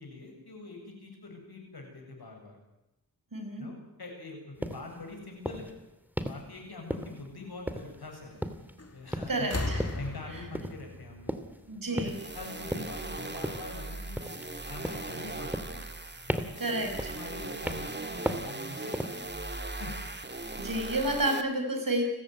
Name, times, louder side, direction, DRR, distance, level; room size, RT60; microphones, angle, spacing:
voice 1, 0.0-2.6 3.5-5.7 6.3-8.4 8.9-9.7 9.9-11.4 11.9-14.4 14.6-15.9 16.3-19.0 19.7-19.9, left 3 dB, 80° left, 2 dB, 7.6 m, -44 dB
voice 2, 3.3-3.7 9.3-9.8 11.7-12.1 16.6-17.1 20.6-22.0, right 1 dB, 60° right, 4 dB, 6.3 m, -30 dB
sound 1, 4.6-4.9 5.5-5.7 6.2-6.5 6.9-7.3 7.7-8.1 8.4-8.8 9.1-9.4 9.8-10.1 10.5-10.8 11.3-11.6 12.0-12.3 12.7-13.0 13.4-13.7 14.2-14.6 14.8-15.1 15.5-16.0 16.3-16.7 17.0-17.3 17.7-18.0 18.3-18.5 18.9-19.2, equal, 5° right, 2.5 m, -35 dB
sound 2, 8.8-9.1 9.4-12.2 13.3-13.4, left 2 dB, 40° left, 3.0 m, -37 dB
sound 3, 12.0-21.4, right 2 dB, 30° right, 2.1 m, -39 dB
29.5 x 14.0 x 9.5 m, 0.94 s
wide cardioid pair, 55°, 37 cm